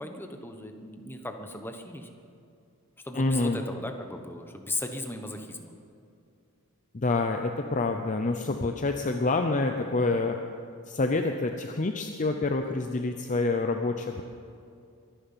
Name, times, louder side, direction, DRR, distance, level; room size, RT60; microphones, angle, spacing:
voice 1, 0.0-2.1 3.0-5.7, left 2 dB, 10° left, 5 dB, 1.1 m, -37 dB
voice 2, 3.1-3.6 6.9-10.4 10.9-14.2, left 3 dB, 35° left, 5 dB, 0.7 m, -27 dB
23.5 x 10.5 x 5.8 m, 2.4 s
head